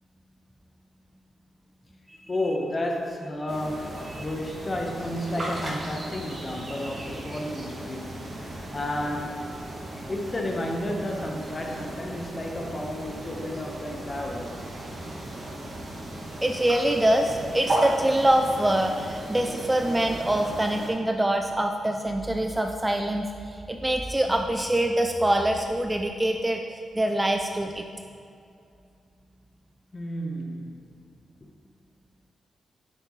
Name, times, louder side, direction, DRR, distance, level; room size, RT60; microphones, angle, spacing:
voice 1, 2.3-9.5 10.1-14.7 29.9-30.8, left 1 dB, 30° left, 1 dB, 1.3 m, -32 dB
sound 1, 3.5-20.9, right 1 dB, 40° right, 2.2 m, -36 dB
voice 2, 16.4-27.8, right 1 dB, 15° right, 3 dB, 0.5 m, -24 dB
9.6 x 8.1 x 3.3 m, 2.4 s
cardioid pair, 85°, 0 cm